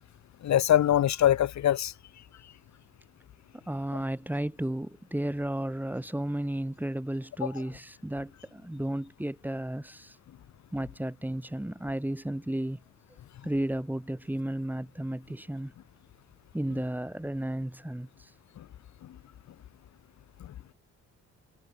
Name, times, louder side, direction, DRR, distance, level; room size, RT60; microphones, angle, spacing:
voice 1, 0.4-1.9 18.6-18.7, left 11 dB, 65° left, 1.7 m, -23 dB
voice 2, 3.5-10.2 10.7-12.8 13.4-15.7 16.5-18.3, right 1 dB, 5° right, 7.6 m, -33 dB
cardioid pair, 90°, 30 cm